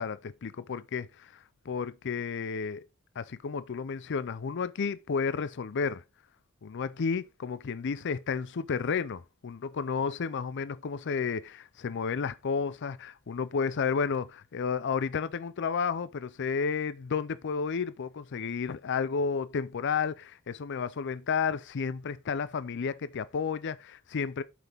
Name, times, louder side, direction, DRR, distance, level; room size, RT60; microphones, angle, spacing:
voice 1, 0.0-2.9 3.2-6.0 6.6-24.4, left 5 dB, 55° left, 0.5 m, -32 dB
9.3 x 5.9 x 3.5 m
head